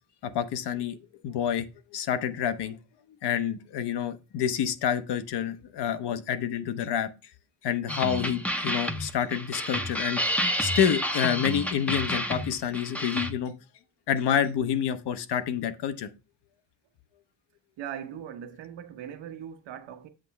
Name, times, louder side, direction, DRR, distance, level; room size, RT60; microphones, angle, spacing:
voice 1, 0.2-1.0 1.2-1.7 1.9-2.8 3.2-7.1 7.6-10.2 10.6-13.5 14.1-16.1, left 9 dB, 65° left, 0.8 m, -28 dB
sound 1, 7.9-13.3, equal, 5° left, 0.5 m, -30 dB
voice 2, 17.8-20.1, right 9 dB, 80° right, 1.1 m, -40 dB
7.7 x 3.1 x 5.7 m
cardioid pair, 155°, 43 cm